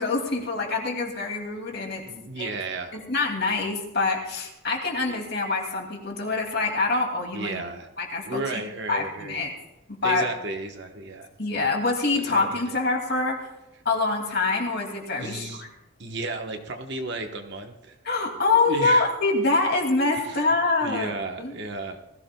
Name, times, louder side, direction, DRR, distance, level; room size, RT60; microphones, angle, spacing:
voice 1, 0.0-2.0 2.4-2.5 2.9-7.6 8.0-8.4 8.9-9.5 10.0-10.3 11.4-13.5 13.8-15.7 18.0-21.5, left 3 dB, 50° left, 2 dB, 2.5 m, -25 dB
voice 2, 2.0-3.0 7.3-7.9 8.2-9.4 10.0-11.3 12.1-12.7 15.2-15.6 16.0-17.9 18.7-19.1 20.1-20.5 20.8-22.0, right 3 dB, 55° right, 4 dB, 1.2 m, -33 dB
20.0 x 15.0 x 2.3 m, 0.93 s
head